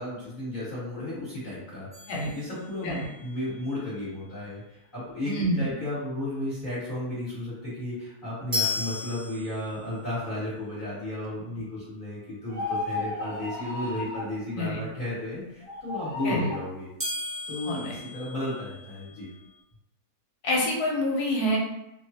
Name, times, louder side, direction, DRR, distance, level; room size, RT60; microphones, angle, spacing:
voice 1, 0.0-1.9 2.3-16.9 17.5-19.3, left 1 dB, 35° left, -13 dB, 1.3 m, -34 dB
sound 1, 1.9-3.2 8.5-10.0 17.0-19.1, left 3 dB, 30° right, 0.4 m, -34 dB
voice 2, 5.2-5.7 14.5-14.8 16.2-16.5 17.6-18.0 20.4-21.6, equal, 90° left, -1 dB, 1.3 m, -27 dB
sound 2, 12.5-14.3 15.6-16.7, left 2 dB, 60° right, 0.8 m, -33 dB
2.8 x 2.3 x 2.7 m, 0.87 s
omnidirectional pair, 1.6 m